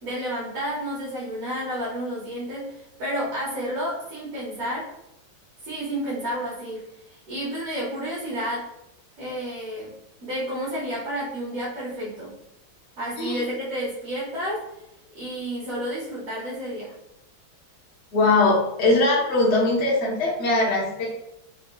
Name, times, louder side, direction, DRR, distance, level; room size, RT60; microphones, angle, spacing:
voice 1, 0.0-4.9 5.6-6.8 7.1-8.6 9.2-9.9 10.2-12.3 13.0-14.6 15.1-16.9, equal, 50° right, -9 dB, 1.6 m, -30 dB
voice 2, 18.1-21.1, left 2 dB, 40° left, -4 dB, 1.1 m, -21 dB
4.2 x 3.8 x 2.3 m, 0.84 s
omnidirectional pair, 2.1 m